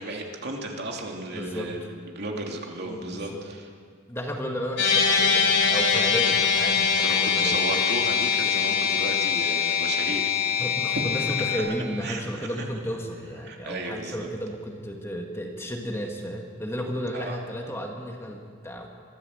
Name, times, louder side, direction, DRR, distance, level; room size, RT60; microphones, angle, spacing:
voice 1, 0.0-3.7 7.0-10.7 10.9-11.6 12.0-12.7 13.4-14.3 17.1-17.4, right 2 dB, 55° right, 0 dB, 2.8 m, -34 dB
voice 2, 1.3-1.7 2.9-3.5 4.1-7.6 10.6-18.9, equal, 10° left, 1 dB, 1.9 m, -33 dB
sound 1, 4.8-11.6, left 6 dB, 65° left, 5.1 m, -23 dB
23.0 x 15.5 x 7.9 m, 2.1 s
head